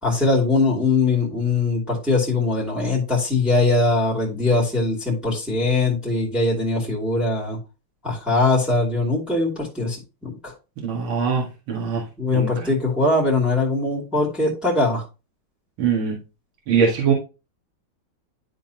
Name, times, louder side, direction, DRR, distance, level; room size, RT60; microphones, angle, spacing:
voice 1, 0.0-7.6 8.0-10.5 12.2-15.0, left 3 dB, ahead, -2 dB, 2.3 m, -21 dB
voice 2, 10.8-12.0 12.3-12.7 15.8-16.2 16.7-17.1, right 6 dB, 70° right, -2 dB, 2.6 m, -22 dB
11.0 x 3.8 x 2.8 m, 0.30 s
omnidirectional pair, 2.3 m